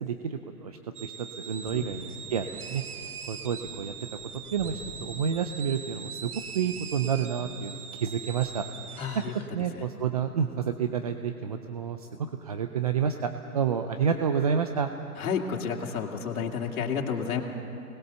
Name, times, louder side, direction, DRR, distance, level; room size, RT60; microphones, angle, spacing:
voice 1, 0.0-4.2 4.5-9.0 9.5-12.1 12.4-14.9, right 7 dB, 25° right, 7 dB, 0.4 m, -30 dB
sound 1, 0.9-9.5, right 7 dB, 70° right, 1.5 m, -42 dB
Thunder, 1.6-8.6, left 5 dB, 30° left, 3.9 m, -50 dB
voice 2, 9.0-9.4 9.7-9.8 15.2-17.4, left 6 dB, 65° left, 0 dB, 2.6 m, -31 dB
25.5 x 19.5 x 6.9 m, 2.9 s
hypercardioid pair, 140°, 46 cm